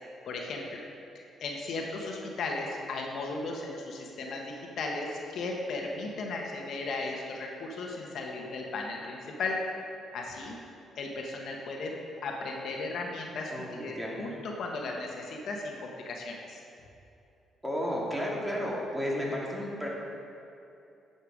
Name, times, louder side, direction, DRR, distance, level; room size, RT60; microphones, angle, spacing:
voice 1, 0.2-0.8 1.1-9.6 10.1-10.6 11.0-11.9 12.2-16.6, left 3 dB, 70° left, 0 dB, 1.3 m, -36 dB
voice 2, 13.5-14.3 17.6-19.9, equal, 10° right, -4 dB, 2.4 m, -33 dB
10.5 x 7.1 x 5.0 m, 2.7 s
cardioid pair, 90°, 0 cm